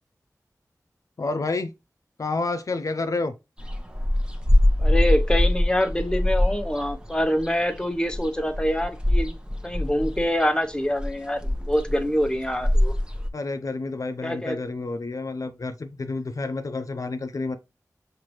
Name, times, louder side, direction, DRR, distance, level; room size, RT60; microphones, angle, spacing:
voice 1, 1.2-1.7 2.2-3.3 13.3-17.6, left 3 dB, 60° left, 0.4 m, -29 dB
sound 1, 3.6-13.3, left 1 dB, 15° right, 0.9 m, -23 dB
voice 2, 4.8-9.4 9.6-12.9 14.2-14.6, equal, 15° left, 0.8 m, -25 dB
5.8 x 2.6 x 3.0 m
cardioid pair, 40°, 6 cm